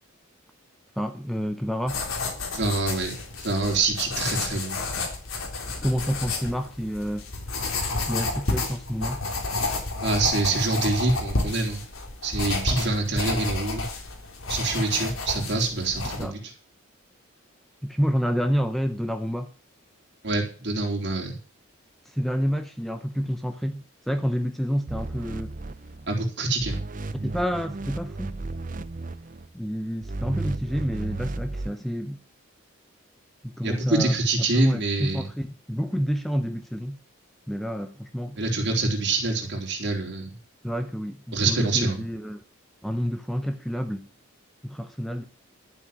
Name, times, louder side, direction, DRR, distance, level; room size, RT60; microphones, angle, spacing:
voice 1, 1.0-2.0 5.7-7.2 8.1-9.2 16.2-16.3 17.8-19.5 22.1-25.5 27.1-28.3 29.5-32.2 33.4-34.2 34.5-37.0 37.5-38.4 40.6-42.4 42.8-44.1 44.6-45.2, equal, ahead, 0.7 m, -29 dB
sound 1, 1.9-16.2, left 3 dB, 80° left, 3.5 m, -31 dB
voice 2, 2.5-4.8 10.0-11.8 12.2-13.8 14.5-16.5 20.2-21.4 26.1-26.8 33.6-35.3 38.4-40.4 41.3-42.0, right 3 dB, 55° right, 3.8 m, -26 dB
sound 2, 24.9-26.3 26.6-29.5 30.0-31.7, right 2 dB, 40° right, 0.7 m, -34 dB
12.5 x 7.3 x 7.5 m
head